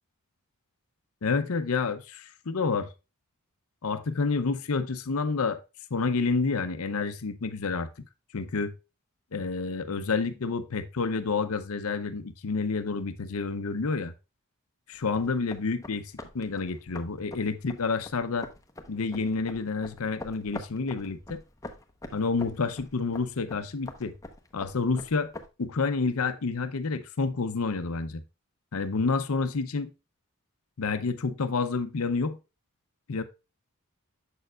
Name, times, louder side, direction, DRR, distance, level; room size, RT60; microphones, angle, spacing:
voice 1, 1.2-2.9 3.8-5.6 5.9-7.9 8.3-8.7 9.3-14.1 14.9-18.5 18.9-21.4 22.1-24.1 24.5-25.3 25.6-28.2 28.7-29.9 30.8-32.4 33.1-33.2, left 4 dB, 80° left, 0.7 m, -29 dB
sound 1, 14.9-25.5, left 2 dB, 15° left, 0.8 m, -45 dB
7.2 x 6.6 x 2.3 m
head